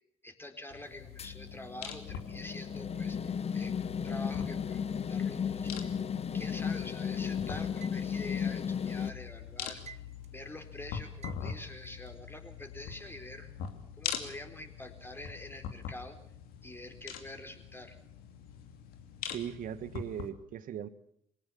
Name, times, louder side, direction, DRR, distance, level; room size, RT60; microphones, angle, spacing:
voice 1, 0.2-5.7 6.3-10.0 10.3-13.5 14.0-16.2 16.6-18.0, left 1 dB, 15° left, 6 dB, 4.1 m, -46 dB
sound 1, 0.7-20.3, left 7 dB, 70° left, 2.5 m, -44 dB
bath room fan, 1.2-9.1, left 7 dB, 40° left, 1.0 m, -34 dB
sound 2, 5.7-7.0 7.8-9.2 9.5-10.5 11.2-12.1, right 6 dB, 45° right, 1.2 m, -53 dB
voice 2, 19.3-20.9, right 9 dB, 60° right, 15 dB, 1.4 m, -39 dB
21.5 x 18.5 x 7.1 m, 0.70 s
hypercardioid pair, 60°, 16 cm